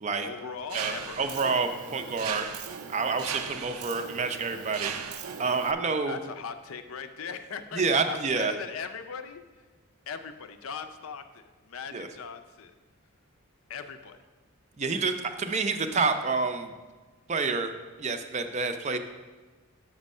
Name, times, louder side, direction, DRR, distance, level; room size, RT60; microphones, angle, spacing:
voice 1, 0.2-1.3 6.0-9.7 10.1-12.7 13.7-14.2 18.9-19.0, left 6 dB, 70° left, 8 dB, 0.5 m, -39 dB
voice 2, 0.7-2.5 2.9-6.2 7.7-8.5 11.9-12.1 14.8-16.7 17.3-17.7 18.0-19.0, right 4 dB, 30° right, 8 dB, 0.4 m, -28 dB
Mechanisms, 0.7-5.7, right 7 dB, 85° right, 0.5 m, -38 dB
6.2 x 6.1 x 5.4 m, 1.3 s
head